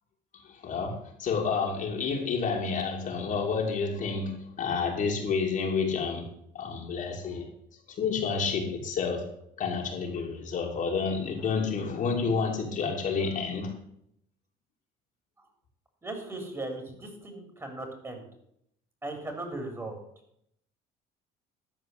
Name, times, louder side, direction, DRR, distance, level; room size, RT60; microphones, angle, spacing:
voice 1, 0.3-6.3 6.5-7.4 7.9-9.3 9.6-13.7, left 5 dB, 55° left, 0 dB, 2.8 m, -29 dB
voice 2, 16.0-18.3 19.0-20.0, right 2 dB, 15° right, 4 dB, 3.5 m, -37 dB
12.5 x 4.7 x 7.8 m, 0.72 s
supercardioid pair, 90°, 16 cm